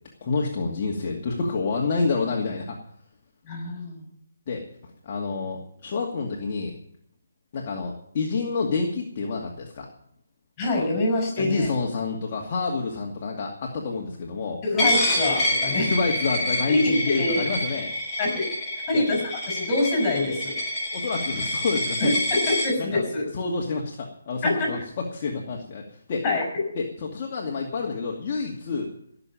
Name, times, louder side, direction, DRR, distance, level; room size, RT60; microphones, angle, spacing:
voice 1, 0.2-2.8 4.5-4.6 5.0-6.7 7.5-9.9 11.4-14.6 15.8-17.9 18.9-19.0 20.9-22.2 22.8-23.0 23.3-26.2 26.7-28.9, left 4 dB, 40° left, -1 dB, 2.3 m, -28 dB
voice 2, 3.5-4.1 10.6-11.7 14.6-15.9 16.7-17.4 18.2-18.4 18.7-20.5 22.0-23.2 24.4-24.8 26.2-26.6, left 2 dB, 25° left, 1 dB, 6.6 m, -25 dB
Coin (dropping), 14.8-22.7, left 1 dB, 5° left, 6.0 m, -27 dB
17.0 x 7.0 x 9.2 m, 0.70 s
hypercardioid pair, 155°, 0 cm